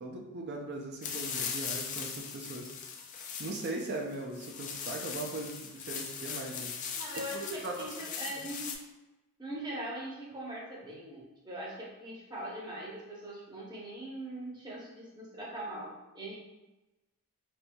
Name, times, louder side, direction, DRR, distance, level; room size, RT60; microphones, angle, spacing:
voice 1, 0.0-2.7 3.4-6.7 7.3-8.1 8.4-8.5, right 2 dB, 50° right, 1 dB, 0.4 m, -39 dB
sound 1, 1.0-8.7, left 6 dB, 35° left, 0.3 m, -39 dB
voice 2, 6.9-8.7 9.4-16.4, right 1 dB, 20° right, -4 dB, 0.7 m, -41 dB
4.4 x 2.6 x 2.2 m, 1.0 s
head